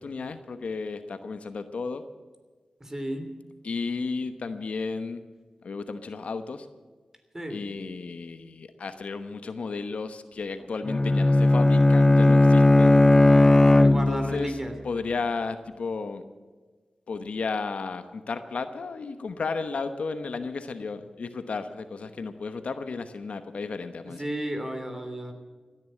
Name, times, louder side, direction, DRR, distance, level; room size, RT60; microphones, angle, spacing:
voice 1, 0.0-2.0 3.6-5.2 5.6-6.7 7.5-13.0 13.9-14.6 14.8-16.2 17.1-24.3, left 4 dB, 80° left, 9 dB, 1.0 m, -33 dB
voice 2, 2.8-3.3 7.3-7.6 13.7-14.7 24.1-25.3, right 1 dB, 20° right, 6 dB, 3.2 m, -33 dB
Bowed string instrument, 10.9-14.5, left 2 dB, 25° left, 0.6 m, -17 dB
17.0 x 10.5 x 7.7 m, 1.4 s
cardioid pair, 50°, 2 cm